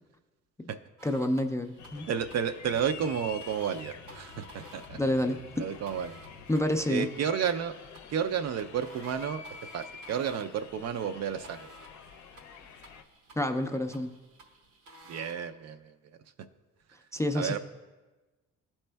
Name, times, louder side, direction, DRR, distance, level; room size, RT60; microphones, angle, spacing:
voice 1, 1.0-2.1 5.0-5.6 6.5-7.1 13.4-14.1 17.1-17.6, left 1 dB, 10° left, 5 dB, 0.3 m, -28 dB
sound 1, 1.0-15.4, right 1 dB, 85° right, 0.9 m, -54 dB
sound 2, 1.8-13.0, left 6 dB, 70° left, 0.6 m, -48 dB
voice 2, 2.1-5.0 5.6-6.2 6.9-7.8 8.1-9.4 9.7-11.7 15.1-15.9 17.3-17.6, right 7 dB, 60° right, 9 dB, 0.4 m, -31 dB
12.5 x 4.2 x 2.2 m, 1.2 s
cardioid pair, 90°, 30 cm